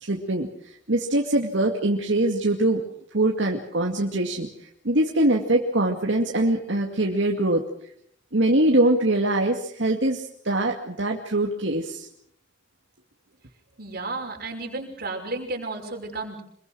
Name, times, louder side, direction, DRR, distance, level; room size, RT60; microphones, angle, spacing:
voice 1, 0.0-2.8 3.1-7.6 8.3-12.1, right 1 dB, 75° right, 1 dB, 2.4 m, -23 dB
voice 2, 13.8-16.4, right 2 dB, 55° right, 2 dB, 5.8 m, -32 dB
26.5 x 22.5 x 6.4 m, 0.68 s
head